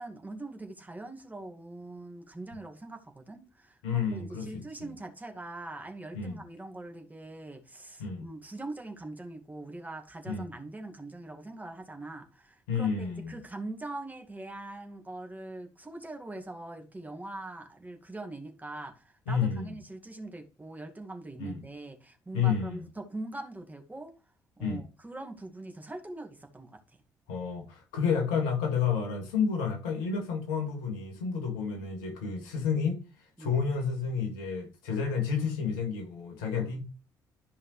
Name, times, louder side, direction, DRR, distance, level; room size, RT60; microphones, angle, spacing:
voice 1, 0.0-24.1 24.6-27.0 33.4-33.5 36.5-36.8, right 2 dB, 15° right, 2.1 m, -42 dB
voice 2, 3.8-4.5 4.8-4.9 6.1-6.4 8.0-8.3 10.3-10.5 12.7-13.4 19.3-19.8 21.4-21.6 22.3-22.8 24.6-24.8 27.3-36.8, left 6 dB, 75° left, 2.3 m, -30 dB
13.0 x 5.5 x 3.2 m
figure-of-eight pair, 45°, 10 cm